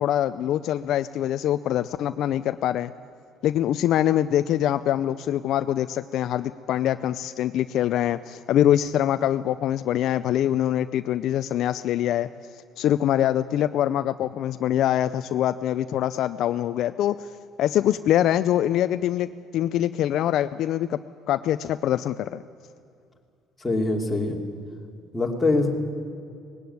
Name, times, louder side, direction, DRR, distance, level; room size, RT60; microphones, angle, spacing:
voice 1, 0.0-2.9 3.4-12.3 12.8-17.3 17.6-19.3 19.5-21.0 21.3-22.4, left 11 dB, 60° left, 11 dB, 0.5 m, -24 dB
voice 2, 23.6-24.4 25.1-25.7, left 2 dB, 10° left, 0 dB, 2.7 m, -23 dB
19.5 x 17.0 x 9.4 m, 2.4 s
cardioid pair, 135°, 0 cm